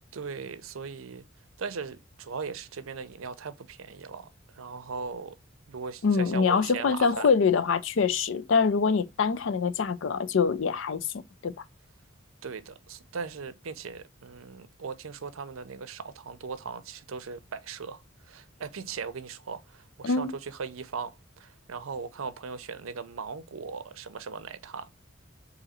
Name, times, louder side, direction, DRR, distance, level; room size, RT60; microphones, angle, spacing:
voice 1, 0.1-1.2 1.6-4.3 4.5-5.3 5.7-7.3 12.4-18.0 18.3-24.9, right 5 dB, 85° right, 0.5 m, -38 dB
voice 2, 6.0-11.1 11.4-11.5 20.0-20.3, left 5 dB, 70° left, 0.4 m, -24 dB
3.8 x 2.8 x 4.2 m
head